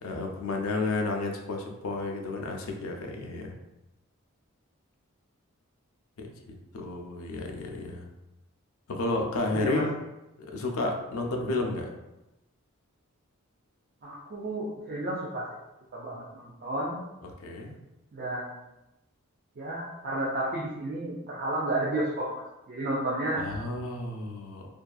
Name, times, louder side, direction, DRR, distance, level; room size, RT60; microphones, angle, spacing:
voice 1, 0.0-3.5 6.2-8.1 8.9-9.9 10.4-11.9 17.2-17.7 23.4-24.7, left 2 dB, 75° left, 2 dB, 0.4 m, -32 dB
voice 2, 9.4-9.9 11.5-11.6 14.0-15.5 15.9-17.0 18.1-18.6 19.6-23.4, right 1 dB, 45° right, -6 dB, 0.4 m, -32 dB
2.6 x 2.3 x 2.3 m, 0.97 s
head